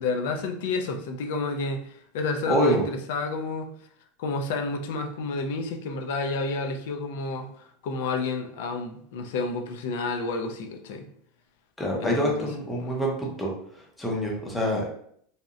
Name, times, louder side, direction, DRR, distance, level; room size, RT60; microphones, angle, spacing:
voice 1, 0.0-3.7 4.2-11.1 12.0-12.5 12.8-13.0, left 3 dB, 70° left, 5 dB, 0.4 m, -30 dB
voice 2, 2.5-2.8 11.8-13.5 14.0-14.9, equal, 10° left, -2 dB, 0.5 m, -26 dB
2.7 x 2.0 x 2.4 m, 0.64 s
supercardioid pair, 160°, 0 cm